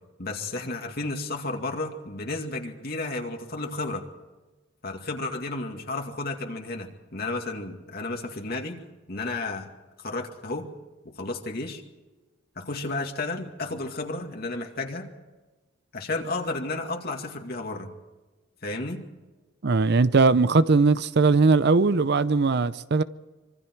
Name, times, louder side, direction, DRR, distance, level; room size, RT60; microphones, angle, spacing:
voice 1, 0.2-4.0 4.8-8.8 9.1-9.7 10.0-10.7 11.0-11.8 12.6-15.1 15.9-17.9 18.6-19.0, left 2 dB, 50° left, 2.2 m, -32 dB
voice 2, 19.6-23.0, right 4 dB, 55° right, 0.6 m, -20 dB
25.5 x 24.5 x 4.6 m
head